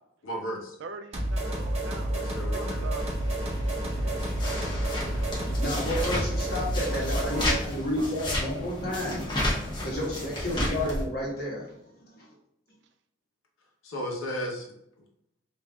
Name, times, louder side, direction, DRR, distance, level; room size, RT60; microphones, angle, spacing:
voice 1, 0.2-0.8 2.1-2.9 4.6-4.8 13.8-14.7, equal, 90° left, 0 dB, 0.9 m, -35 dB
voice 2, 0.8-2.2 2.5-3.0 4.0-5.4 8.0-8.1, right 4 dB, 65° right, 8 dB, 0.4 m, -43 dB
sound 1, 1.1-7.6, right 1 dB, 30° right, 0.7 m, -30 dB
sound 2, 3.0-11.0, left 1 dB, 20° left, 0.8 m, -32 dB
voice 3, 5.4-9.4 9.8-12.3, left 1 dB, 50° left, -4 dB, 1.3 m, -31 dB
5.3 x 2.6 x 2.3 m, 0.78 s
head